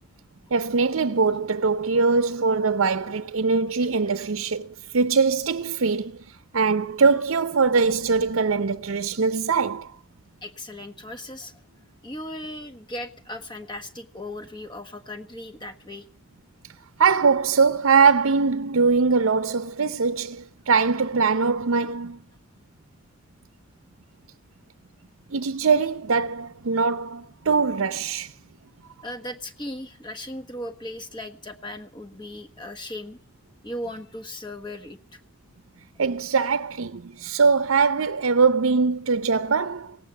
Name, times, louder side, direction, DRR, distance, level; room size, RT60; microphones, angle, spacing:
voice 1, 0.5-9.9 17.0-22.2 25.3-28.3 36.0-40.0, right 5 dB, 75° right, 0.6 m, -22 dB
voice 2, 10.4-11.6 12.0-16.1 29.0-33.2 33.6-35.2, left 1 dB, 20° left, 1.2 m, -37 dB
18.0 x 8.5 x 9.1 m
head